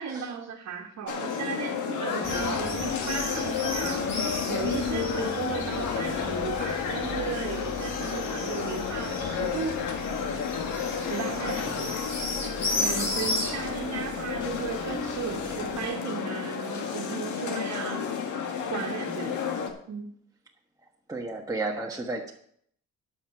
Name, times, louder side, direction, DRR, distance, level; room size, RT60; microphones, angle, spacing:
voice 1, 0.0-4.1 4.5-9.8 11.0-11.9 12.8-18.1 18.7-19.4 19.9-20.1, right 6 dB, 60° right, -1 dB, 1.6 m, -35 dB
sound 1, 1.1-19.7, left 6 dB, 80° left, 1.8 m, -31 dB
sound 2, 2.2-15.9, left 2 dB, 60° left, 3.8 m, -36 dB
voice 2, 21.1-22.3, right 2 dB, 10° right, -1 dB, 1.3 m, -33 dB
11.5 x 6.3 x 5.9 m, 0.66 s
cardioid pair, 90°, 30 cm